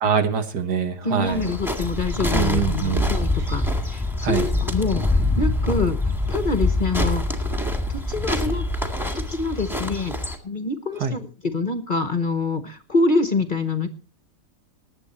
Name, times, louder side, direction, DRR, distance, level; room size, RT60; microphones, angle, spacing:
voice 1, 0.0-1.4 2.3-3.1 4.2-4.5 11.0-11.1, right 6 dB, 75° right, 8 dB, 2.1 m, -23 dB
voice 2, 1.0-7.2 7.9-8.6 9.1-10.1 10.4-13.9, left 3 dB, 35° left, 10 dB, 0.9 m, -26 dB
sound 1, 1.3-10.4, left 1 dB, ahead, 1.8 m, -25 dB
19.5 x 8.2 x 4.2 m, 0.38 s
omnidirectional pair, 1.8 m